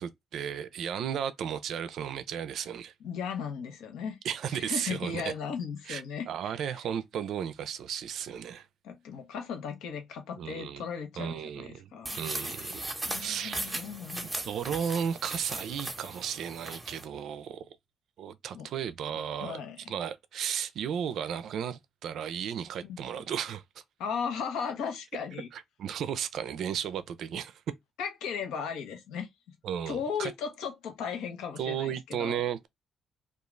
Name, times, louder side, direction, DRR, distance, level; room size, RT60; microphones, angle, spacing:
voice 1, 0.0-2.9 4.2-5.3 5.9-8.7 10.3-10.8 11.2-11.9 12.2-12.8 13.2-13.8 14.3-17.6 18.2-19.6 19.9-23.6 25.5-27.6 29.6-30.3 31.6-32.7, right 8 dB, 75° right, 0.4 m, -34 dB
voice 2, 3.0-4.2 4.5-6.5 8.8-12.2 12.4-14.3 18.5-18.7 19.4-19.9 22.8-23.0 24.0-25.5 28.0-29.3 29.9-32.4, left 6 dB, 90° left, 0.8 m, -36 dB
sound 1, 12.0-17.0, right 1 dB, 15° right, 0.8 m, -38 dB
2.4 x 2.3 x 3.1 m
cardioid pair, 90°, 0 cm